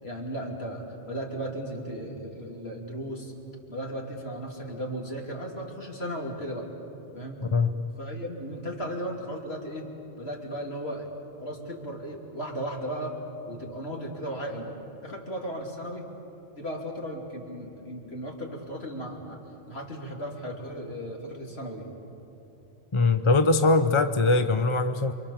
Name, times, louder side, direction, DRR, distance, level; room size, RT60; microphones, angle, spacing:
voice 1, 0.0-3.3 3.7-6.7 7.1-7.5 8.0-9.9 10.2-11.1 11.4-13.2 13.5-14.7 15.0-16.1 16.5-19.4 19.7-21.9, equal, 55° left, 0 dB, 3.4 m, -36 dB
voice 2, 22.9-25.1, left 3 dB, 30° left, 9 dB, 0.6 m, -22 dB
29.0 x 24.5 x 7.3 m, 2.9 s
omnidirectional pair, 1.2 m